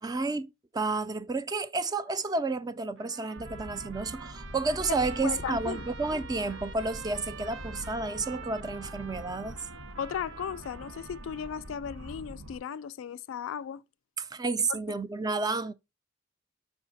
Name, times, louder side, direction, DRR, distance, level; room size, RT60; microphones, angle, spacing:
voice 1, 0.0-9.6 14.2-15.7, right 3 dB, 20° right, 0.3 m, -31 dB
Trumpet, 3.0-11.8, right 6 dB, 60° right, 0.6 m, -47 dB
sound 1, 3.3-12.6, equal, 80° right, 1.5 m, -44 dB
voice 2, 4.9-5.8 10.0-13.8 14.7-14.8, left 8 dB, 70° left, 0.3 m, -36 dB
5.6 x 4.5 x 4.0 m
head